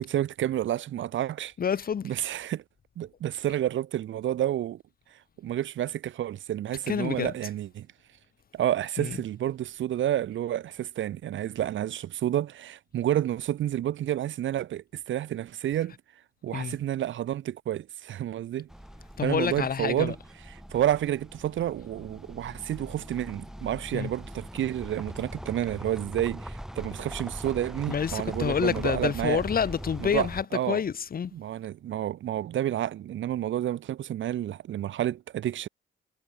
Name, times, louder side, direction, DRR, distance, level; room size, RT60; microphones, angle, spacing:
voice 1, 0.0-1.5 2.0-2.6 3.0-4.8 5.4-7.9 8.5-15.9 16.4-18.7 19.2-20.2 20.7-29.4 30.0-30.8 31.3-35.7, right 12 dB, 75° right, 5.8 m, -30 dB
voice 2, 1.6-2.1 6.9-7.3 9.0-9.2 16.5-16.8 19.2-20.1 23.9-24.1 27.9-31.3, left 7 dB, 45° left, 2.4 m, -28 dB
sound 1, 18.7-30.4, equal, ahead, 5.3 m, -41 dB
cardioid pair, 90°, 20 cm